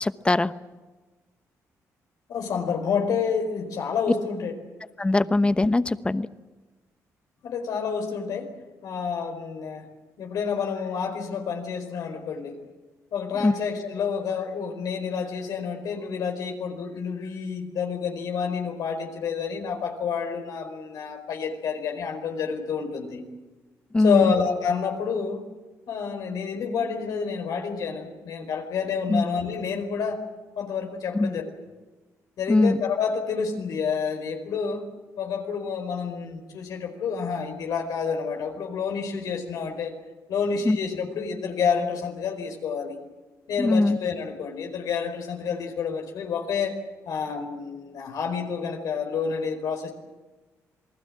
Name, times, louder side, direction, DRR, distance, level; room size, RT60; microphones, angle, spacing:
voice 1, 0.0-0.5 5.0-6.3 13.4-13.5 23.9-24.3 29.1-29.2 31.1-31.3 32.5-32.8 40.6-40.8 43.6-44.0, left 2 dB, 15° left, 13 dB, 1.0 m, -21 dB
voice 2, 2.3-4.5 7.4-8.5 8.8-9.9 10.2-12.6 13.1-23.2 24.0-25.5 25.9-30.2 30.6-31.4 32.4-34.9 35.2-39.9 40.3-43.0 43.5-46.7 47.0-49.9, left 6 dB, 75° left, 4 dB, 4.7 m, -29 dB
27.5 x 19.5 x 7.7 m, 1.2 s
cardioid pair, 90°, 6 cm